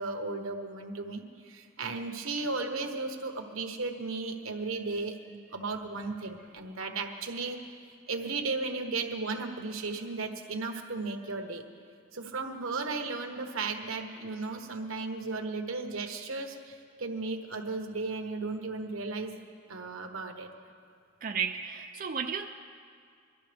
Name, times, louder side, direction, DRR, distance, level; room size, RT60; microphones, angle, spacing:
voice 1, 0.0-7.7 8.1-11.6 12.1-19.4 19.7-20.5, right 3 dB, 85° right, 5 dB, 1.2 m, -35 dB
voice 2, 21.2-22.5, right 6 dB, 40° right, 3 dB, 0.4 m, -33 dB
22.5 x 13.0 x 3.4 m, 2.2 s
head